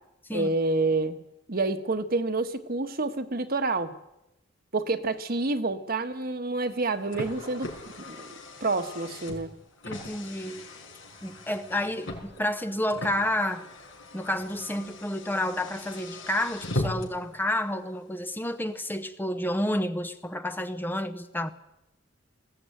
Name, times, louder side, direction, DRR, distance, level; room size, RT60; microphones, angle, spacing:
voice 1, 0.3-1.2 1.5-3.9 4.7-7.7 8.1-8.3 8.6-9.5, right 3 dB, 50° right, 7 dB, 1.5 m, -28 dB
Car, 6.7-17.3, left 1 dB, 80° left, 5.3 m, -39 dB
voice 2, 9.8-10.6 11.2-13.6 14.1-21.5, left 1 dB, 10° left, 9 dB, 0.8 m, -30 dB
20.5 x 16.0 x 9.2 m, 0.90 s
head